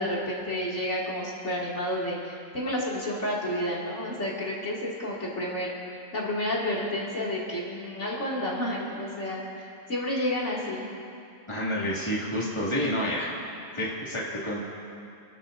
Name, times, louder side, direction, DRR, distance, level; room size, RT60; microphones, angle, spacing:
voice 1, 0.0-10.9, left 1 dB, 60° left, -5 dB, 2.9 m, -30 dB
voice 2, 11.5-13.3 13.8-14.6, equal, 20° left, -7 dB, 2.4 m, -29 dB
29.0 x 12.0 x 2.7 m, 2.6 s
omnidirectional pair, 1.4 m